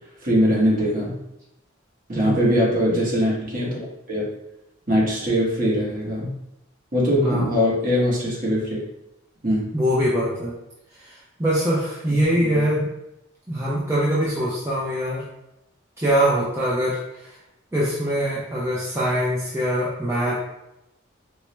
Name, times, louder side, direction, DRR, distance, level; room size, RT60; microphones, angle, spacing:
voice 1, 0.2-1.1 2.1-4.2 4.9-6.3 6.9-8.8 9.4-9.6 12.1-12.6, equal, 40° right, -5 dB, 1.2 m, -22 dB
voice 2, 2.2-2.5 7.2-7.5 9.7-10.5 11.0-12.9 13.5-15.2 16.0-17.3 17.7-20.4, equal, 15° right, -7 dB, 0.5 m, -23 dB
4.5 x 2.1 x 3.0 m, 0.87 s
head